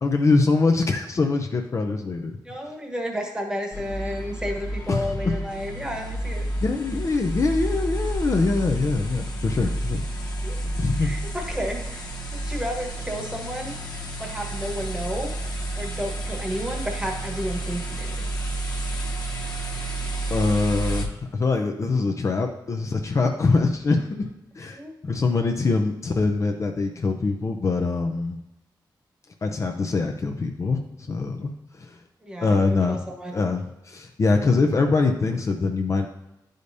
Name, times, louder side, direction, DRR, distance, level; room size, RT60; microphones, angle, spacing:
voice 1, 0.0-2.4 4.9-5.3 6.6-10.0 10.6-11.1 20.3-24.3 24.6-28.4 29.4-32.0 32.4-33.0 33.3-36.1, left 3 dB, 40° left, 3 dB, 0.5 m, -23 dB
voice 2, 2.4-6.4 10.4-10.6 11.0-13.9 14.2-15.3 15.8-18.2 24.7-24.9 32.2-33.4, equal, 10° right, 1 dB, 1.1 m, -32 dB
sound 1, 3.7-21.0, right 1 dB, 60° left, 0.9 m, -30 dB
11.0 x 5.0 x 2.7 m, 0.89 s
wide cardioid pair, 170°, 8 cm